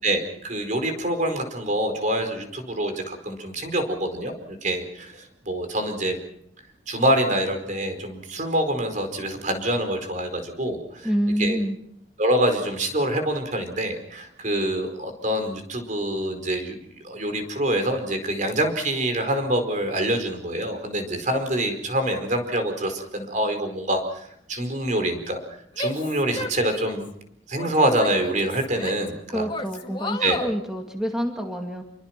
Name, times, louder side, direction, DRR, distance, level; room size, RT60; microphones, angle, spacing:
voice 1, 0.0-6.2 6.9-11.1 11.4-11.6 12.2-16.8 17.0-24.0 24.5-25.4 25.8-27.1 27.5-29.5 30.2-30.4, right 1 dB, 45° right, 7 dB, 4.8 m, -25 dB
voice 2, 11.0-11.8 29.3-31.8, equal, 5° right, 2 dB, 2.3 m, -27 dB
Female speech woman speaking / Yell, 25.8-27.1 27.6-29.1 29.5-30.5, left 2 dB, 25° left, 2.3 m, -33 dB
28.0 x 23.5 x 6.0 m, 0.71 s
head